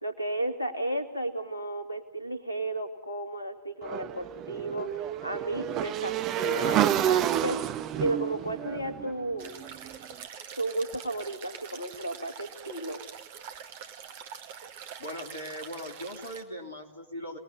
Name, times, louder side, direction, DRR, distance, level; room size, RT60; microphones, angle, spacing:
voice 1, 0.0-4.9 5.2-7.6 8.0-9.6 10.6-13.0, right 1 dB, 85° left, 8 dB, 2.7 m, -33 dB
Motorcycle / Engine, 3.8-9.9, right 11 dB, 35° right, 1.2 m, -29 dB
sound 1, 9.4-16.4, right 8 dB, 50° right, 2.1 m, -44 dB
voice 2, 15.0-17.4, equal, 70° left, 3 dB, 3.3 m, -39 dB
29.0 x 20.5 x 9.9 m, 0.78 s
figure-of-eight pair, 90°, 0 cm